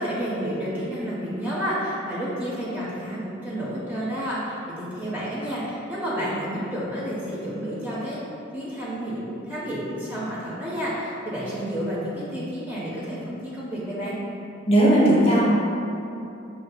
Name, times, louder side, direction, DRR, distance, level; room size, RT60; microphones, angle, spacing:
voice 1, 0.0-8.2 8.5-14.2, equal, 10° right, -8 dB, 0.5 m, -30 dB
voice 2, 14.7-15.5, right 1 dB, 30° left, -6 dB, 0.7 m, -17 dB
6.2 x 2.6 x 2.2 m, 2.8 s
head